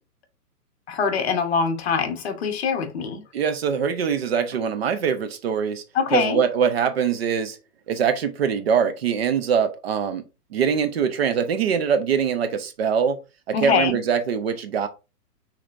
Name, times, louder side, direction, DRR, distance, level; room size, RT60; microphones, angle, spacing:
voice 1, 0.9-3.2 5.9-6.4 13.5-14.0, left 6 dB, 40° left, 1.0 m, -23 dB
voice 2, 3.3-5.8 6.1-7.6 7.9-13.2 13.5-14.9, right 7 dB, 40° right, 0.7 m, -23 dB
6.1 x 3.4 x 2.5 m
hypercardioid pair, 155°, 48 cm